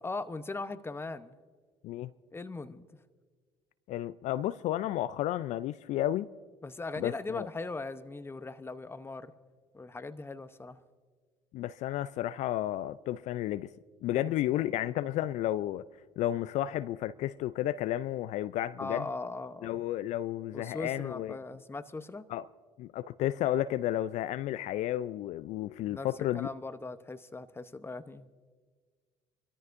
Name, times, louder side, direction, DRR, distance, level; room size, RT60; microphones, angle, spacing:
voice 1, 0.0-1.4 2.3-2.9 6.6-9.3 9.7-10.8 14.1-14.6 18.8-19.8 20.5-22.3 25.9-26.1 26.3-28.3, left 3 dB, 20° left, 0.8 m, -39 dB
voice 2, 3.9-6.3 7.0-7.5 11.5-13.7 14.0-15.8 16.2-19.1 19.6-21.4 22.3-22.4 22.8-26.5, left 13 dB, 65° left, 0.4 m, -32 dB
25.0 x 13.5 x 2.6 m
hypercardioid pair, 65°, 13 cm